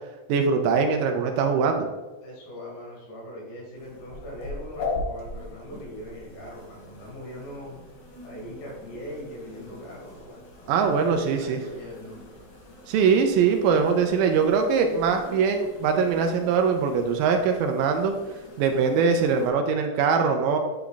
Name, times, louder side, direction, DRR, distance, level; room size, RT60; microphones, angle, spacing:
voice 1, 0.3-1.9 10.7-11.6 12.9-18.1 18.6-20.6, right 5 dB, 85° right, 5 dB, 2.2 m, -22 dB
voice 2, 2.2-7.8 8.2-12.2, equal, 90° left, -3 dB, 3.9 m, -40 dB
sound 1, 3.7-19.5, left 2 dB, 55° left, 1.2 m, -41 dB
9.5 x 3.5 x 3.8 m, 1.2 s
omnidirectional pair, 4.0 m